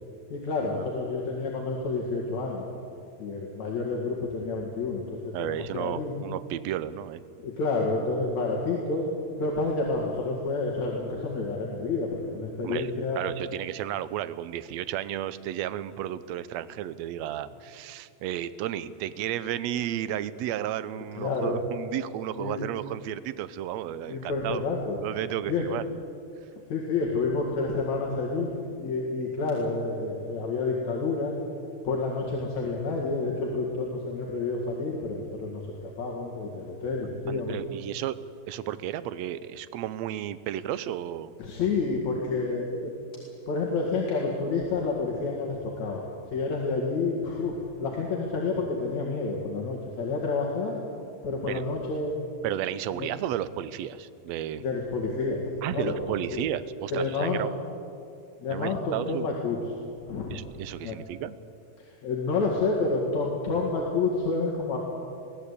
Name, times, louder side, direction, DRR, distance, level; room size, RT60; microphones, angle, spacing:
voice 1, 0.3-2.7 3.2-6.2 7.4-9.1 9.4-13.2 21.2-21.6 22.4-22.7 24.1-25.0 25.5-25.7 26.7-28.5 28.8-31.4 31.8-35.6 36.0-37.6 41.4-42.9 43.5-46.1 46.3-50.8 51.2-52.2 52.9-53.1 54.6-55.4 55.7-56.5 56.9-57.4 58.4-59.6 60.1-60.4 60.8-61.0 61.9-64.8, left 3 dB, 75° left, -2 dB, 3.4 m, -29 dB
voice 2, 5.3-7.2 12.6-24.7 25.0-25.8 37.3-38.2 38.5-41.3 51.5-51.6 52.4-54.6 55.6-57.5 58.5-59.3 60.3-61.4, right 12 dB, 75° right, 14 dB, 1.9 m, -33 dB
23.0 x 16.5 x 8.3 m, 2.5 s
omnidirectional pair, 3.3 m